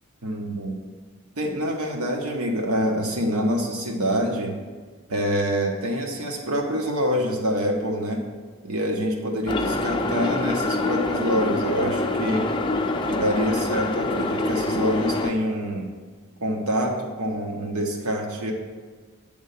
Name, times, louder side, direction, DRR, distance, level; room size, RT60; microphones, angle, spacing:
voice 1, 0.2-0.7 1.4-4.6 5.1-8.2 8.6-12.5 13.0-15.9 16.4-18.5, equal, 85° right, 1 dB, 1.2 m, -26 dB
sound 1, 9.5-15.3, left 2 dB, 20° left, 0.4 m, -25 dB
9.1 x 3.6 x 6.8 m, 1.5 s
head